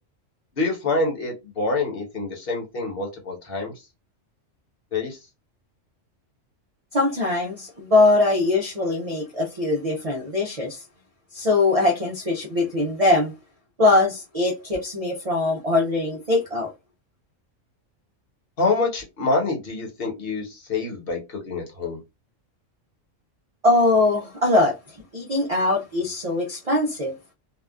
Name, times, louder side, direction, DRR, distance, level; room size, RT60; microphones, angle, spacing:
voice 1, 0.6-3.7 4.9-5.2 18.6-22.0, left 3 dB, 50° left, 1.1 m, -26 dB
voice 2, 6.9-10.8 11.3-13.3 13.8-16.7 23.6-24.8 25.1-27.1, left 2 dB, 55° right, 0.4 m, -21 dB
2.7 x 2.3 x 2.2 m
omnidirectional pair, 1.3 m